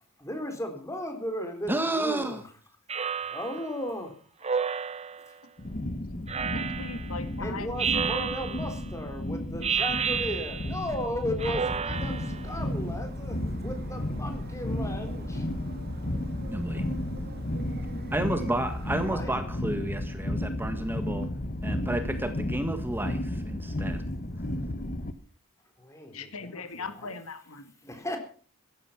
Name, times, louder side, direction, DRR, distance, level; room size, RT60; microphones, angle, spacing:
voice 1, 0.2-2.5 3.3-4.1 5.3-5.4 7.4-15.5 19.0-19.5 25.8-27.2 27.8-28.2, left 1 dB, 15° left, 5 dB, 4.0 m, -36 dB
voice 2, 1.7-2.4 16.5-16.8 18.1-21.3 21.6-24.0, right 1 dB, 10° right, 7 dB, 1.7 m, -31 dB
Speech synthesizer, 2.9-3.7 4.4-5.3 6.3-7.1 7.8-8.8 9.6-10.8 11.4-12.4, right 6 dB, 30° right, 1.0 m, -31 dB
sound 1, 5.6-25.1, left 1 dB, 40° left, 1.3 m, -33 dB
voice 3, 6.3-7.8 26.1-27.7, left 4 dB, 85° left, 10 dB, 1.8 m, -40 dB
sound 2, 11.9-19.1, right 2 dB, 45° right, 2.5 m, -49 dB
16.0 x 13.5 x 5.9 m, 0.42 s
head